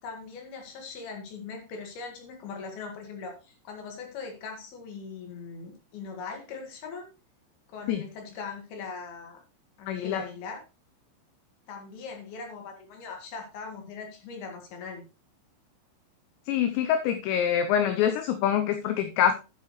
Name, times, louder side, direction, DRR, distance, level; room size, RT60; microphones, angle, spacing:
voice 1, 0.0-7.1 7.7-9.4 9.8-10.6 11.7-15.0, left 5 dB, 60° left, 3 dB, 3.4 m, -40 dB
voice 2, 9.9-10.2 16.5-19.3, left 9 dB, 80° left, 8 dB, 2.8 m, -25 dB
11.5 x 7.6 x 3.1 m, 0.29 s
omnidirectional pair, 5.6 m